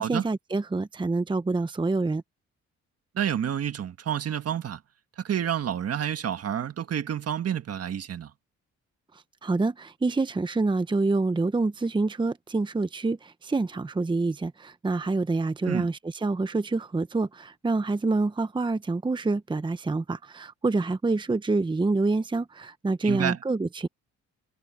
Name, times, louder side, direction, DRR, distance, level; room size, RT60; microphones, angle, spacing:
voice 1, 0.0-2.2 9.1-23.9, right 3 dB, 15° right, 0.9 m, -27 dB
voice 2, 3.2-4.8 5.2-8.3 15.6-15.9 23.0-23.4, right 9 dB, 55° right, 1.7 m, -29 dB
cardioid pair, 90°, 30 cm